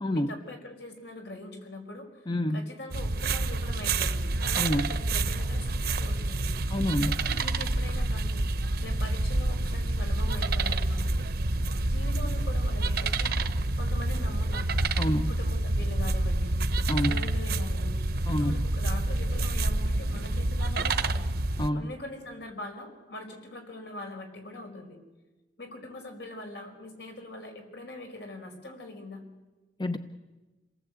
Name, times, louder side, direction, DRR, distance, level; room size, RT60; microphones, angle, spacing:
voice 1, 0.1-6.5 7.0-8.4 8.8-11.3 11.8-13.4 13.8-14.8 15.3-16.6 17.1-18.0 18.4-21.2 21.7-25.0 25.6-29.2, left 2 dB, 75° left, 4 dB, 4.8 m, -42 dB
voice 2, 2.3-2.7 4.6-5.0 6.7-7.2 15.0-15.3 16.9-17.3 18.3-18.5 21.6-21.9 29.8-30.0, left 1 dB, 25° left, 8 dB, 0.8 m, -28 dB
sound 1, 2.9-21.7, right 2 dB, 60° right, 1.0 m, -28 dB
28.0 x 18.5 x 8.2 m, 1.2 s
head